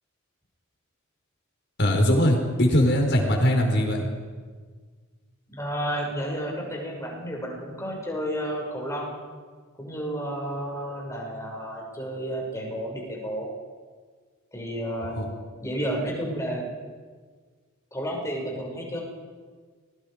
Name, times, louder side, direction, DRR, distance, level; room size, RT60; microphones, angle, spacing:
voice 1, 1.8-4.0 15.0-15.2, equal, 55° left, 2 dB, 4.8 m, -21 dB
voice 2, 5.5-9.1 9.8-13.5 14.5-15.2 15.6-16.6 17.9-19.0, equal, 15° left, -1 dB, 6.5 m, -31 dB
29.5 x 22.5 x 5.2 m, 1.5 s
head